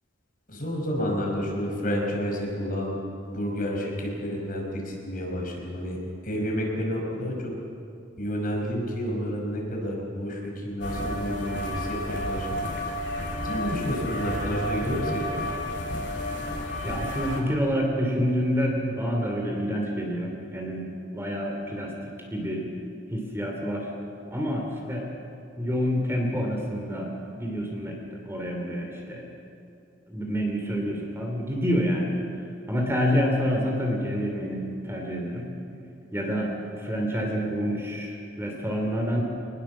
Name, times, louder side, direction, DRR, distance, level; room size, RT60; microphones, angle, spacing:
voice 1, 0.5-3.0 3.2-6.0 6.2-7.5 8.2-12.7 13.4-15.3, equal, 45° left, -1 dB, 5.2 m, -30 dB
sound 1, 10.8-17.4, left 1 dB, 60° left, 3.6 m, -31 dB
voice 2, 16.8-20.8 21.1-21.9 22.3-22.7 23.1-23.9 24.3-25.1 25.6-27.1 27.4-28.0 28.2-29.2 30.1-32.2 32.7-35.5 36.1-36.5 36.8-39.2, equal, 15° right, 0 dB, 2.8 m, -27 dB
24.0 x 20.0 x 7.3 m, 2.6 s
head